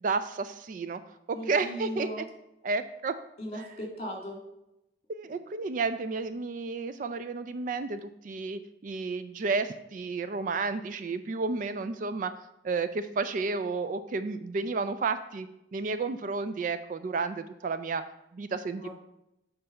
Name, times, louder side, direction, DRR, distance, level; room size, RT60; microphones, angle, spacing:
voice 1, 0.0-1.0 1.3-2.1 2.6-3.2 5.1-12.3 12.6-18.0 18.3-18.9, right 4 dB, 45° right, 12 dB, 0.3 m, -31 dB
voice 2, 1.3-2.2 3.4-4.4 18.8-18.9, equal, 35° left, 0 dB, 2.0 m, -37 dB
7.8 x 4.0 x 5.4 m, 0.85 s
head